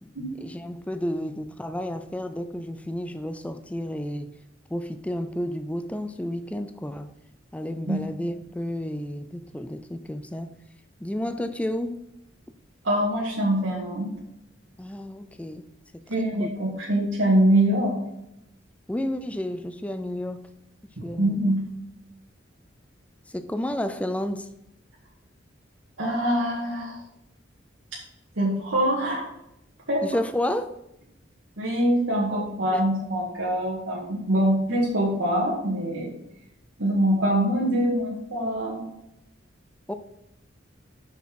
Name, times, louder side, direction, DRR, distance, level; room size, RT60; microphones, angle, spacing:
voice 1, 0.4-4.3 4.7-7.1 7.5-10.5 11.0-12.0 14.8-15.6 15.9-16.5 18.9-20.5 21.0-21.5 23.3-24.5 30.0-30.7 32.7-32.8 39.9-40.0, left 1 dB, 5° left, 9 dB, 0.4 m, -31 dB
voice 2, 12.8-14.2 16.1-18.0 21.0-21.6 26.0-27.0 28.4-29.3 29.9-30.0 31.6-36.1 36.8-38.8, right 1 dB, 85° right, -4 dB, 1.9 m, -24 dB
6.8 x 6.3 x 4.6 m, 0.82 s
head